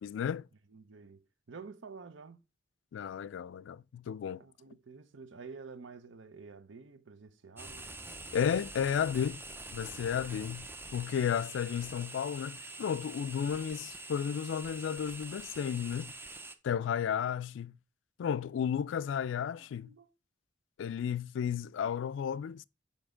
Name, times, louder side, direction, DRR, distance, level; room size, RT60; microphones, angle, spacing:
voice 1, 0.0-0.4 2.9-4.4 8.3-9.4 9.7-10.7 10.9-16.1 16.6-17.8 18.2-19.9 20.8-22.6, left 8 dB, 75° left, 0.3 m, -33 dB
voice 2, 0.7-2.4 4.4-7.9 19.3-20.1, right 4 dB, 75° right, 0.7 m, -50 dB
sound 1, 7.6-16.6, right 2 dB, 10° right, 0.5 m, -46 dB
7.0 x 5.2 x 3.7 m
head